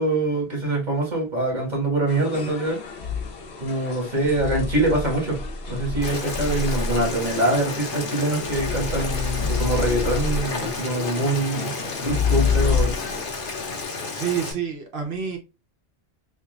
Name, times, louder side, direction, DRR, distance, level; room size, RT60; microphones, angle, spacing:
voice 1, 0.0-2.8 3.6-5.4 5.7-11.7 12.0-12.9, right 2 dB, 45° right, 1.5 m, -24 dB
sound 1, 2.1-13.3, left 4 dB, 90° left, 1.0 m, -39 dB
sound 2, 3.0-3.3 4.2-7.2 8.4-10.7 12.0-13.1, left 5 dB, 25° left, 0.6 m, -26 dB
Boiling, 6.0-14.5, left 3 dB, 55° left, 1.0 m, -32 dB
voice 2, 14.1-15.4, right 8 dB, 75° right, 1.1 m, -28 dB
3.0 x 2.4 x 3.1 m
omnidirectional pair, 1.1 m